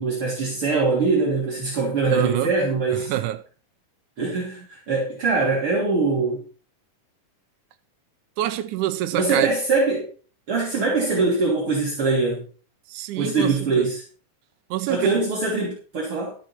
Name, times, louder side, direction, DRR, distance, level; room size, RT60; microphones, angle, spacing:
voice 1, 0.0-3.1 4.2-6.4 9.1-10.1 10.5-12.4 13.2-14.0 14.8-16.4, right 3 dB, 45° right, 3.8 m, -23 dB
voice 2, 2.0-2.5 2.9-3.4 8.4-9.6 12.9-13.9 14.7-15.2, right 13 dB, 80° right, 2.2 m, -26 dB
13.0 x 9.7 x 4.4 m
omnidirectional pair, 3.6 m